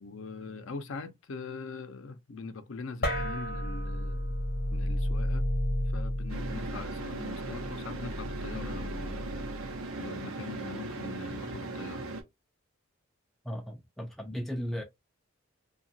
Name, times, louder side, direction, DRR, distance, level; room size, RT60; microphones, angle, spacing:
voice 1, 0.0-4.4 4.7-5.5 5.8-9.3 10.0-12.1, left 4 dB, 65° left, 0.5 m, -42 dB
sound 1, 3.0-9.8, left 1 dB, 50° left, 0.9 m, -33 dB
sound 2, 6.3-12.2, right 2 dB, 85° right, 0.7 m, -38 dB
voice 2, 13.4-14.8, equal, ahead, 0.3 m, -36 dB
2.8 x 2.3 x 2.6 m
head